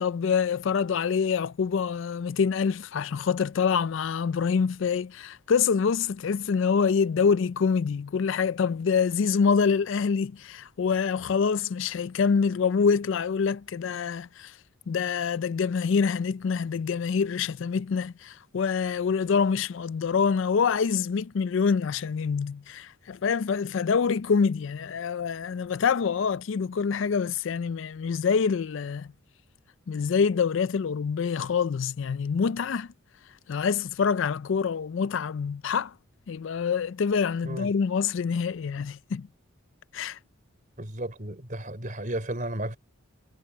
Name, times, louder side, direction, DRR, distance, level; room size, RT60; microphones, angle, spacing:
voice 1, 0.0-14.5 14.9-29.1 29.9-32.9 33.5-35.9 36.3-39.3 39.9-40.2, left 6 dB, 65° left, 0.4 m, -26 dB
voice 2, 40.8-42.8, right 1 dB, 40° right, 3.9 m, -33 dB
head